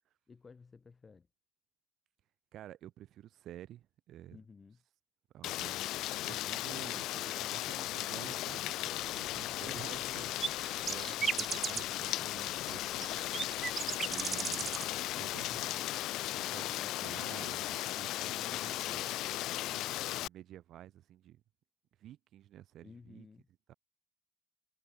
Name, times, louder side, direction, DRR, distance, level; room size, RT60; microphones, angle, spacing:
voice 1, 0.3-1.3 4.3-4.8 9.6-10.1 18.4-19.1 22.8-23.5, left 4 dB, 25° left, 7.7 m, -55 dB
voice 2, 2.5-4.4 5.3-10.3 10.8-13.6 14.1-14.8 15.2-15.8 16.2-19.2 19.6-21.4 22.0-23.3 23.7-23.8, right 12 dB, 65° right, 1.0 m, -51 dB
Rain, 5.4-20.3, left 15 dB, 85° left, 0.4 m, -36 dB
sound 1, 9.0-14.9 15.2-15.8, right 6 dB, 30° right, 0.6 m, -37 dB
cardioid pair, 155°, 0 cm